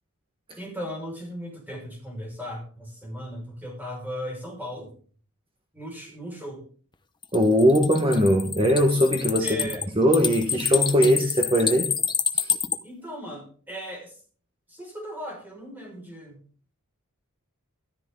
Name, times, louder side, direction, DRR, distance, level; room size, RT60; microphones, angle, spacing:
voice 1, 0.6-4.9 5.7-6.7 9.4-9.8 12.8-14.1 14.7-16.4, equal, 10° right, 0 dB, 6.0 m, -37 dB
sound 1, 7.2-12.8, left 7 dB, 20° left, 0.9 m, -27 dB
voice 2, 7.3-9.5 10.0-11.9 12.3-12.5, equal, 25° right, 4 dB, 1.6 m, -20 dB
13.5 x 13.5 x 4.0 m, 0.44 s
head